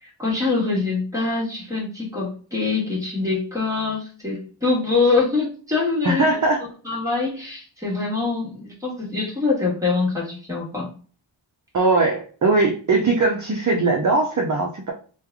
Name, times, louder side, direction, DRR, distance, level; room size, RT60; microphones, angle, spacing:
voice 1, 0.0-6.3 6.8-10.9, left 3 dB, 5° right, -3 dB, 1.3 m, -24 dB
voice 2, 6.0-6.6 11.7-14.9, right 3 dB, 40° right, 1 dB, 0.5 m, -20 dB
3.2 x 2.3 x 3.5 m, 0.40 s
wide cardioid pair, 105°, 47 cm